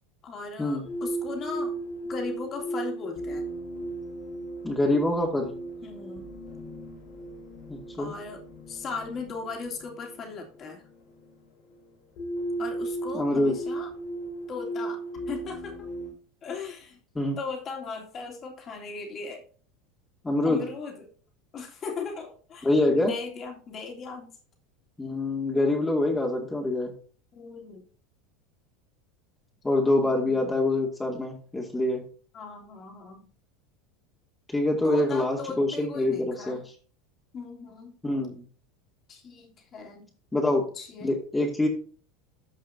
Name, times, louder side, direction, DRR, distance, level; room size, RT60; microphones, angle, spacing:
voice 1, 0.2-3.4 5.8-6.3 8.0-10.8 12.6-13.9 14.5-15.9 16.4-17.0 17.4-19.4 20.4-21.1 21.5-22.7 22.9-24.3 27.3-27.9 32.3-33.3 34.8-36.6 37.3-38.0 39.1-40.1 40.6-41.1, left 4 dB, 40° left, 2 dB, 3.1 m, -38 dB
sound 1, 0.8-16.1, right 2 dB, 55° left, 4.7 m, -36 dB
voice 2, 4.6-5.5 7.7-8.1 13.1-13.5 17.2-17.4 20.2-20.6 22.6-23.1 25.0-26.9 29.6-32.0 34.5-36.6 38.0-38.4 40.3-40.6 41.0-41.7, left 2 dB, 10° left, -1 dB, 2.4 m, -25 dB
15.0 x 5.6 x 2.7 m, 0.42 s
hypercardioid pair, 80°, 0 cm